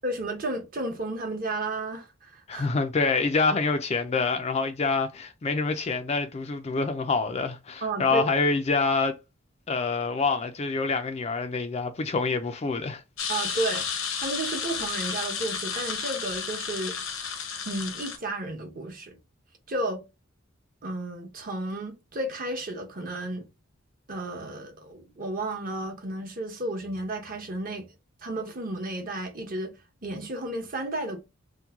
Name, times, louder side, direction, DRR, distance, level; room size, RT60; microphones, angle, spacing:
voice 1, 0.0-2.7 7.8-8.3 13.3-13.9 14.2-17.0 17.7-19.2 19.7-20.0 20.8-23.5 24.1-27.9 28.2-29.7 30.0-31.2, right 2 dB, 45° right, 0.9 m, -32 dB
voice 2, 2.5-9.1 9.7-13.0, left 4 dB, 30° left, 0.4 m, -26 dB
sound 1, 13.2-18.2, left 6 dB, 80° left, 0.8 m, -32 dB
2.9 x 2.2 x 3.4 m
head